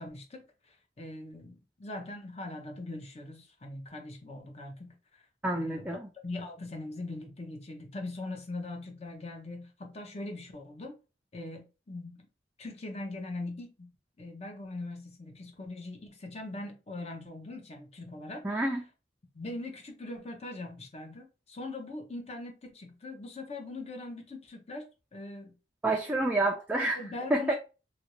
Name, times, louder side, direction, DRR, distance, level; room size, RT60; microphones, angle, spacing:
voice 1, 0.0-5.2 5.5-11.0 11.3-12.3 12.6-13.9 14.2-18.4 19.3-24.9 25.1-25.6 26.9-27.5, left 2 dB, 35° left, 0.7 m, -41 dB
voice 2, 5.4-6.0 18.4-18.8 25.8-27.0 27.3-27.5, right 2 dB, 10° right, 0.3 m, -28 dB
3.0 x 2.5 x 2.9 m
head